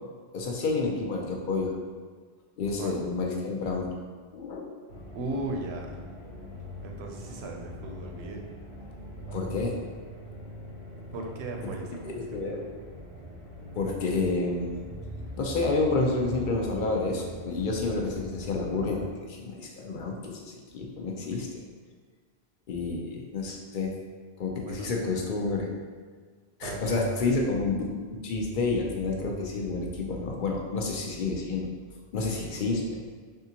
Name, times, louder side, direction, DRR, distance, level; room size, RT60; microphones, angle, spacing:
voice 1, 0.3-1.7 2.6-3.9 4.3-4.7 9.3-9.8 12.0-12.6 13.8-14.7 15.4-20.4 20.7-21.6 22.7-23.9 24.4-25.7 26.6-31.7 32.1-33.0, left 3 dB, 55° left, 0 dB, 0.7 m, -29 dB
sound 1, 4.9-19.1, equal, 75° left, 1.1 m, -41 dB
voice 2, 5.1-6.0 6.8-8.5 11.1-12.6 24.6-24.9 26.6-27.3, right 2 dB, 80° right, 1 dB, 0.8 m, -37 dB
3.6 x 3.6 x 2.8 m, 1.5 s
omnidirectional pair, 1.1 m